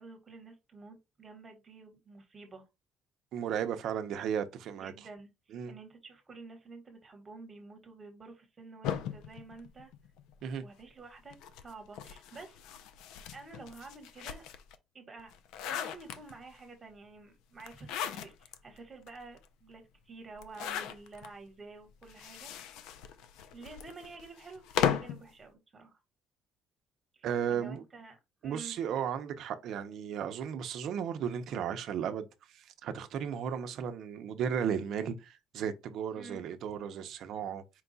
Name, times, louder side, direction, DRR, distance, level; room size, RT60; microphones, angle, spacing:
voice 1, 0.0-2.7 4.7-9.9 10.6-12.7 13.3-14.4 14.9-15.3 15.6-22.8 23.5-26.0 27.1-28.8 36.1-36.4, right 3 dB, 20° right, 1.2 m, -50 dB
voice 2, 3.3-4.9 5.5-5.7 10.4-10.6 27.2-27.8 28.4-37.6, right 8 dB, 55° right, 0.6 m, -35 dB
sound 1, 8.8-10.4 11.3-14.7 15.2-16.6 17.6-18.6 19.1-19.2 19.4-19.5 20.4-21.3 22.0-25.2, left 9 dB, 85° left, 0.4 m, -37 dB
4.5 x 2.3 x 3.9 m
cardioid pair, 155°, 0 cm